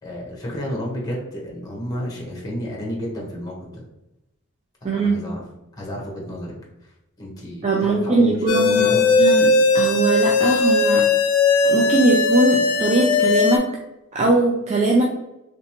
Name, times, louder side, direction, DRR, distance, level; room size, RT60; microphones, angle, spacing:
voice 1, 0.0-3.8 4.8-5.4 5.8-6.5 7.2-9.2, equal, 15° left, -2 dB, 0.8 m, -31 dB
voice 2, 4.8-5.3 7.6-11.1 11.6-13.7 14.1-15.0, right 2 dB, 30° right, -1 dB, 0.3 m, -20 dB
sound 1, 8.5-13.6, left 3 dB, 75° left, 0.4 m, -18 dB
3.2 x 2.9 x 2.9 m, 0.91 s
head